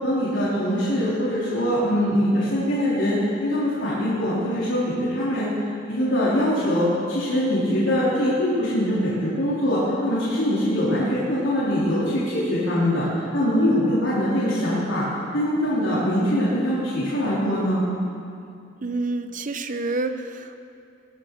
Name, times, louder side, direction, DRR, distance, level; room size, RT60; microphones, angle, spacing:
voice 1, 0.0-5.5 5.9-15.0 15.3-17.9, equal, 85° left, -9 dB, 3.4 m, -23 dB
voice 2, 18.8-20.6, right 2 dB, 45° right, 9 dB, 0.8 m, -28 dB
19.5 x 11.0 x 4.6 m, 2.5 s
head